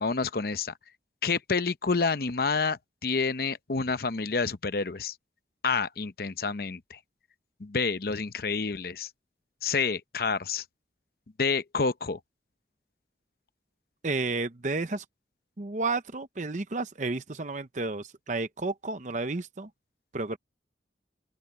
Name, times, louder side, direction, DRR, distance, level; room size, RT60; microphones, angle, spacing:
voice 1, 0.0-0.7 1.2-5.1 5.6-7.0 7.6-9.1 9.6-10.6 11.4-12.2, left 4 dB, 55° left, 0.7 m, -28 dB
voice 2, 14.0-15.0 15.6-19.7 20.1-20.4, right 3 dB, 45° right, 0.8 m, -31 dB
open air
head